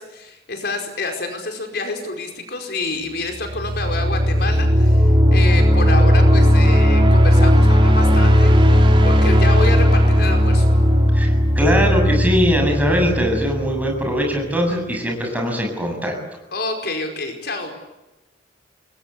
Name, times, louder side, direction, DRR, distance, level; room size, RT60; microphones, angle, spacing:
voice 1, 0.0-8.5 9.0-10.7 16.5-17.7, left 2 dB, 60° left, 4 dB, 4.9 m, -28 dB
sound 1, 3.4-14.1, equal, 30° right, 3.8 m, -15 dB
voice 2, 11.1-16.2, equal, 10° right, 2 dB, 7.5 m, -21 dB
28.5 x 21.5 x 8.3 m, 1.0 s
head